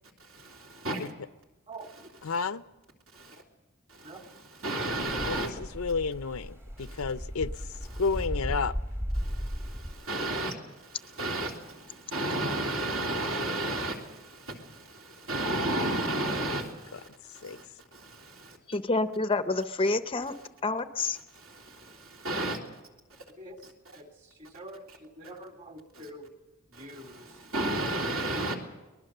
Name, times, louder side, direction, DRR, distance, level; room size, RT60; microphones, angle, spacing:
voice 1, 0.3-1.0 3.1-3.3 4.0-4.1 4.6-5.5 6.9-7.0 7.9-8.0 9.1-10.5 10.9-17.1 17.4-17.6 17.9-18.6 21.4-22.6 27.5-28.5, right 1 dB, 65° right, 3.2 m, -32 dB
voice 2, 2.2-2.6 5.3-7.5 8.0-8.7 16.9-17.0 17.4-17.6, left 4 dB, 75° left, 0.6 m, -31 dB
sound 1, 5.1-9.9, equal, 10° right, 1.2 m, -35 dB
voice 3, 18.7-20.3 20.6-21.2, left 3 dB, 25° left, 0.6 m, -28 dB
voice 4, 23.9-26.3 26.7-27.4, right 1 dB, 35° right, 2.4 m, -46 dB
23.0 x 20.0 x 6.7 m
head